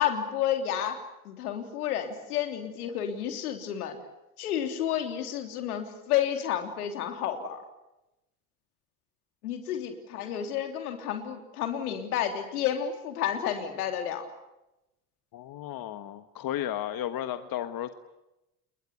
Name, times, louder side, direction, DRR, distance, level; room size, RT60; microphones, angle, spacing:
voice 1, 0.0-4.0 4.4-7.6 9.4-14.3, left 10 dB, 85° left, 6 dB, 3.4 m, -31 dB
voice 2, 15.3-17.9, left 11 dB, 50° left, 10 dB, 1.5 m, -34 dB
28.5 x 21.5 x 8.4 m, 0.94 s
hypercardioid pair, 65°, 44 cm